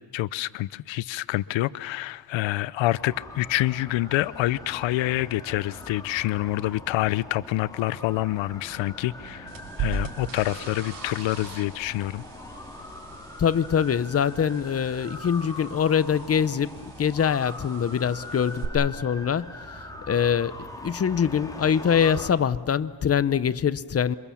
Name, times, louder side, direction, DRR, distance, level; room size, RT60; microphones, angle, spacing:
voice 1, 0.0-9.5 9.8-12.2, left 17 dB, 85° left, 0.7 m, -27 dB
sound 1, 2.9-22.3, left 1 dB, 10° left, 3.7 m, -42 dB
sound 2, 9.5-18.6, right 6 dB, 65° right, 3.2 m, -40 dB
voice 2, 13.4-16.7 17.0-19.6 20.1-24.2, left 8 dB, 35° left, 0.7 m, -24 dB
27.0 x 25.0 x 7.1 m
cardioid pair, 115°, 44 cm